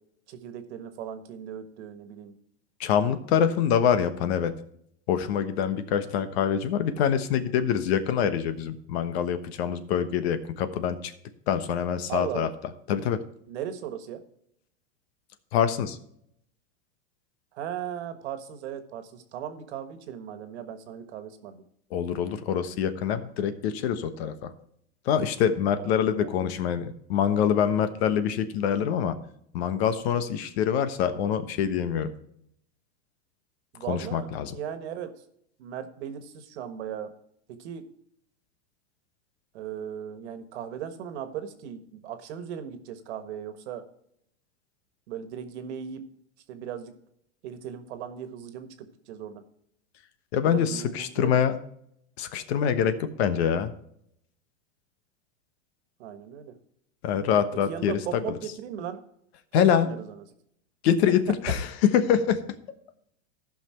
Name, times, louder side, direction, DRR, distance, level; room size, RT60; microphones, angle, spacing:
voice 1, 0.3-2.3 12.1-12.5 13.5-14.2 17.5-21.6 25.8-26.3 33.7-35.1 35.6-37.1 37.5-37.9 39.5-43.8 45.1-46.1 46.5-46.9 47.4-49.4 50.4-51.3 56.0-56.6 57.7-59.0 59.5-60.2, right 9 dB, 70° right, 9 dB, 1.6 m, -37 dB
voice 2, 2.8-4.5 5.1-11.1 11.5-12.5 12.9-13.2 15.5-16.0 21.9-24.5 25.1-29.2 29.5-32.1 33.9-34.6 50.3-51.6 52.2-53.7 57.0-58.0 59.5-59.9 60.8-62.4, left 8 dB, 60° left, 10 dB, 1.2 m, -25 dB
14.5 x 5.8 x 4.5 m, 0.71 s
supercardioid pair, 145°, 35 cm